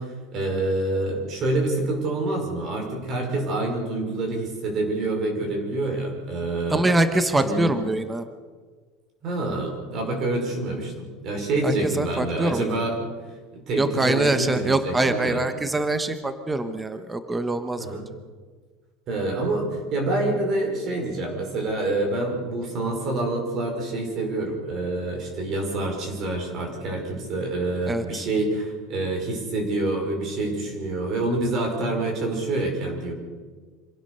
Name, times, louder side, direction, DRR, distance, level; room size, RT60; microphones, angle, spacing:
voice 1, 0.0-6.9 7.3-7.7 9.2-13.0 13.5-15.4 17.8-18.1 19.1-33.1, right 2 dB, 35° right, 2 dB, 5.4 m, -27 dB
voice 2, 6.7-8.3 11.6-12.8 13.8-17.9 27.9-28.3, right 2 dB, 10° right, 9 dB, 1.0 m, -24 dB
25.5 x 16.5 x 6.8 m, 1.5 s
cardioid pair, 170°, 0 cm